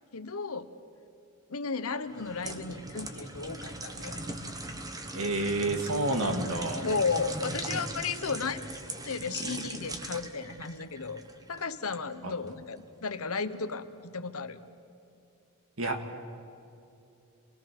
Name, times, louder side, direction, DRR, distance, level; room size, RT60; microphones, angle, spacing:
voice 1, 0.1-0.7 1.5-4.2 6.1-8.6 9.0-11.2 11.5-14.6, left 4 dB, 85° left, 10 dB, 1.2 m, -34 dB
sound 1, 2.1-12.0 12.5-12.7, right 1 dB, 15° right, 1.3 m, -40 dB
voice 2, 5.1-6.8 12.2-12.3 15.8-16.0, right 2 dB, 70° right, 5 dB, 2.3 m, -29 dB
28.0 x 21.0 x 6.2 m, 2.7 s
head